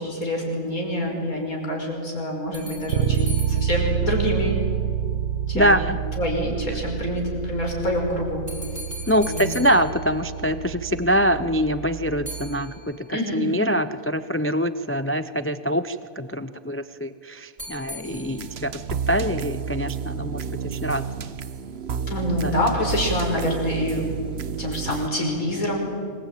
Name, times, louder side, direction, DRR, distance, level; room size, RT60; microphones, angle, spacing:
voice 1, 0.0-4.6 5.5-5.8 6.2-8.4 9.2-9.5 13.1-13.4 22.1-24.1 24.6-25.8, left 1 dB, 85° left, 0 dB, 5.9 m, -26 dB
sound 1, 2.5-4.9 8.5-11.0 12.2-13.4 17.6-18.8, equal, 20° right, 4.9 m, -41 dB
Bass guitar, 2.9-12.7, right 9 dB, 70° right, 1.3 m, -28 dB
voice 2, 5.5-6.0 9.1-21.3 22.4-22.6, equal, 20° left, 12 dB, 0.3 m, -24 dB
sound 2, 18.0-25.1, right 6 dB, 50° right, 1.1 m, -31 dB
26.0 x 21.5 x 9.1 m, 2.3 s
omnidirectional pair, 1.4 m